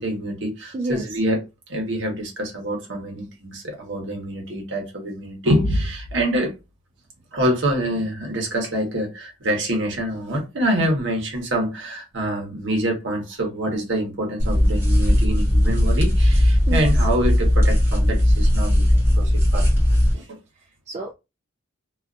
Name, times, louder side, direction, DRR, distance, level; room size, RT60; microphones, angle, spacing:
voice 1, 0.0-1.4 1.7-6.5 7.3-19.7 20.1-20.4, right 1 dB, 60° right, 1.0 m, -26 dB
voice 2, 0.7-1.1 16.7-16.9 20.6-21.1, right 2 dB, 30° right, 0.3 m, -30 dB
sound 1, 14.4-20.1, left 1 dB, 10° right, 1.1 m, -18 dB
2.5 x 2.3 x 2.5 m
head